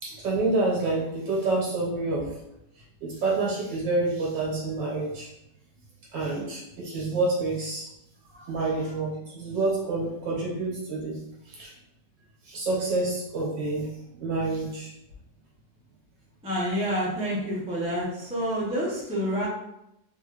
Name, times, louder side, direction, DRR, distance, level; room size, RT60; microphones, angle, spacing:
voice 1, 0.0-2.3 3.0-5.3 6.1-7.9 8.3-11.2 11.5-11.7 12.4-14.9, right 2 dB, 75° right, -4 dB, 1.9 m, -28 dB
voice 2, 16.4-19.5, equal, 5° right, -6 dB, 0.5 m, -28 dB
3.8 x 2.5 x 3.1 m, 0.82 s
omnidirectional pair, 2.0 m